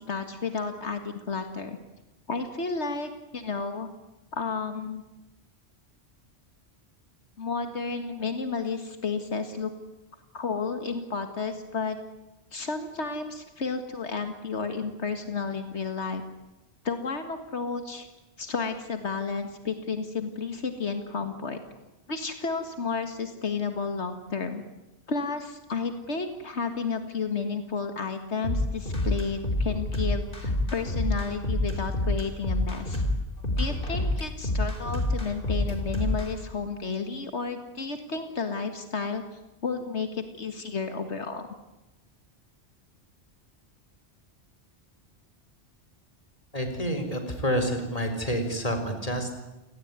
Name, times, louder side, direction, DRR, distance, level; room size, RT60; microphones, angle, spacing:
voice 1, 0.0-1.8 2.3-3.9 4.3-5.0 7.4-9.7 10.3-12.0 12.5-16.2 16.8-18.1 18.4-21.6 22.1-24.6 25.1-33.0 33.6-39.2 39.6-41.5, left 4 dB, 80° left, 7 dB, 2.1 m, -32 dB
sound 1, 28.4-36.3, left 1 dB, 50° left, 3.9 m, -27 dB
voice 2, 46.5-49.3, equal, 35° left, 6 dB, 4.4 m, -28 dB
29.5 x 18.5 x 9.6 m, 1.0 s
omnidirectional pair, 1.1 m